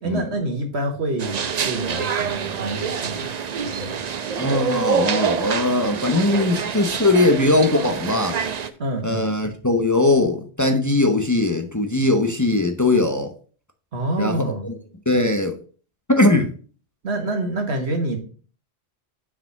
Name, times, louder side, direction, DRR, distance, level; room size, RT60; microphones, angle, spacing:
voice 1, 0.0-3.3 3.6-4.0 4.9-5.1 8.8-9.3 13.9-14.7 17.0-18.2, right 1 dB, 80° right, 1.8 m, -27 dB
sound 1, 1.2-8.7, right 6 dB, 45° right, 0.6 m, -26 dB
voice 2, 4.4-8.4 9.0-13.3 14.2-14.7 15.1-15.6 16.1-16.5, left 2 dB, 20° left, 0.7 m, -20 dB
6.1 x 4.9 x 5.8 m
omnidirectional pair, 1.1 m